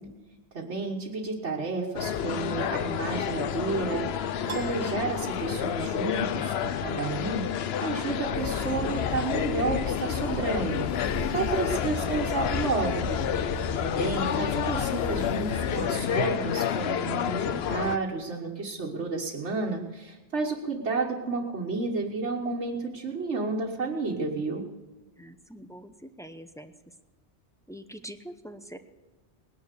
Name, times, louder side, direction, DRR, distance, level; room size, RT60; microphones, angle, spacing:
voice 1, 0.0-0.4 11.7-12.3 25.2-26.9 27.7-28.8, equal, 5° left, 8 dB, 0.7 m, -45 dB
voice 2, 0.5-7.5 7.8-10.9 11.3-13.1 13.8-24.7, right 3 dB, 80° right, -2 dB, 1.7 m, -31 dB
sound 1, 1.9-18.0, left 9 dB, 70° left, 0.9 m, -30 dB
Piano, 4.5-6.0, right 3 dB, 50° right, 1.6 m, -41 dB
sound 2, 8.3-15.9, left 4 dB, 40° left, 1.2 m, -35 dB
19.5 x 10.0 x 6.7 m, 1.2 s
omnidirectional pair, 1.2 m